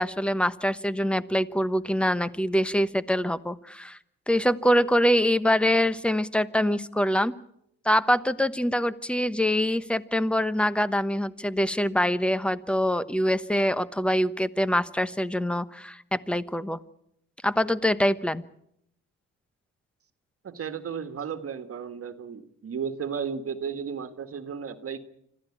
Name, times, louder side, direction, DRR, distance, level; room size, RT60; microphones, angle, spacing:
voice 1, 0.0-4.0 4.3-7.3 7.8-16.8 17.4-18.4, equal, 5° left, 15 dB, 1.0 m, -24 dB
voice 2, 20.4-25.0, right 6 dB, 50° right, 8 dB, 1.8 m, -34 dB
26.0 x 14.5 x 8.6 m, 0.74 s
cardioid pair, 90°, 30 cm